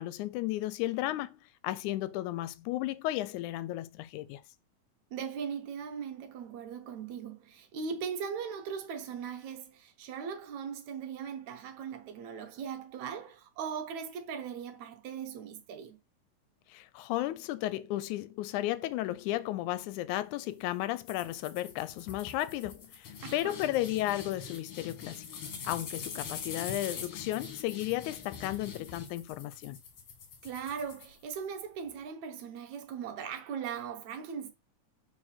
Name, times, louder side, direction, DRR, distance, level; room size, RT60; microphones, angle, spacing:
voice 1, 0.0-4.4 16.7-25.3 25.6-29.8, left 15 dB, 85° left, 1.9 m, -34 dB
voice 2, 5.1-16.0 23.2-23.6 30.4-34.5, right 7 dB, 70° right, 2.3 m, -39 dB
sound 1, 21.1-31.6, left 6 dB, 55° left, 2.0 m, -44 dB
4.8 x 4.4 x 5.8 m
omnidirectional pair, 3.5 m